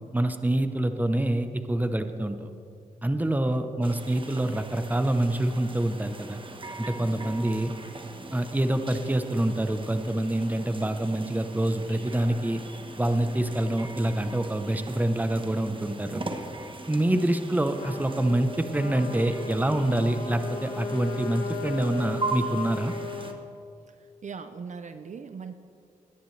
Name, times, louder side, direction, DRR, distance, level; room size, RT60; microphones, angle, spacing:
voice 1, 0.1-2.5 3.0-6.4 6.8-7.7 8.3-12.6 13.0-16.2 16.9-22.9, right 1 dB, 10° right, 8 dB, 0.9 m, -26 dB
voice 2, 3.5-3.8 7.0-7.4 17.1-17.2 23.9-24.0 24.2-25.5, right 5 dB, 55° right, 9 dB, 0.6 m, -41 dB
sound 1, 3.8-23.3, right 2 dB, 35° right, 1.2 m, -40 dB
Trumpet, 17.8-23.4, left 4 dB, 90° left, 1.7 m, -36 dB
20.5 x 10.0 x 3.3 m, 2.4 s
cardioid pair, 65°, 15 cm